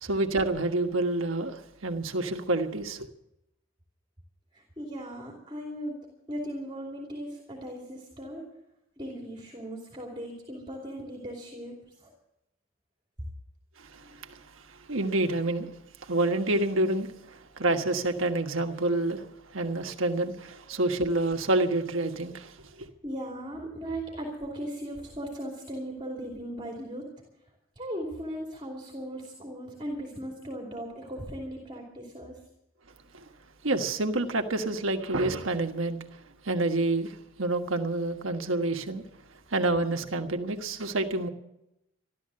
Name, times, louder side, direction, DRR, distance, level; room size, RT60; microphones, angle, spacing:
voice 1, 0.0-3.1 13.8-14.4 14.9-15.7 16.0-19.2 19.5-22.9 33.1-33.2 33.6-36.0 36.4-39.0 39.5-41.3, right 2 dB, 85° right, 1.5 m, -28 dB
voice 2, 4.5-6.0 6.3-8.4 9.0-11.8 12.0-12.1 23.0-27.1 27.8-32.3, equal, 25° right, 2.8 m, -38 dB
14.0 x 12.5 x 7.7 m
head